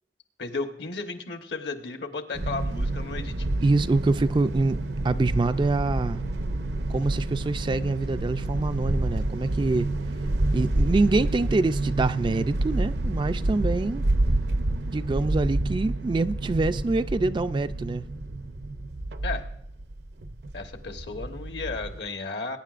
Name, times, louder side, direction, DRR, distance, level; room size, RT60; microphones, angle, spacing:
voice 1, 0.4-3.5 19.2-19.5 20.5-22.6, left 3 dB, 70° left, 6 dB, 1.2 m, -34 dB
sound 1, 2.3-22.0, right 2 dB, 75° right, 0.7 m, -28 dB
voice 2, 3.6-4.8 5.0-6.2 6.9-9.9 10.5-14.0 14.9-18.0, right 3 dB, 25° right, 11 dB, 0.3 m, -25 dB
21.0 x 9.7 x 2.5 m, 0.75 s
head